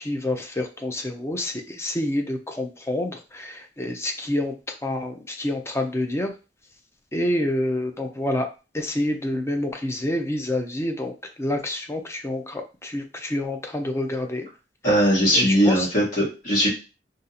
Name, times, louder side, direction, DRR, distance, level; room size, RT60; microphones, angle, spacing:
voice 1, 0.0-6.3 7.1-8.5 8.7-14.5 14.8-15.1 15.3-15.9, left 1 dB, 15° left, 5 dB, 0.5 m, -28 dB
voice 2, 14.8-16.7, equal, 50° left, -6 dB, 1.4 m, -19 dB
2.6 x 2.5 x 4.0 m, 0.32 s
head